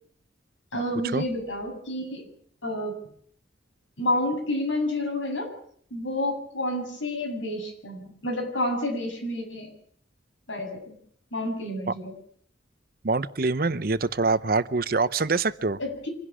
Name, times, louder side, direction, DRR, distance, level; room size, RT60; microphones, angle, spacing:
voice 1, 0.7-2.3 2.6-3.0 4.0-5.5 5.9-9.7 10.5-11.0 11.3-12.1 15.8-16.1, left 1 dB, 90° left, 2 dB, 7.6 m, -29 dB
voice 2, 13.0-15.8, right 3 dB, 50° right, 15 dB, 0.8 m, -25 dB
25.5 x 11.5 x 9.9 m, 0.63 s
head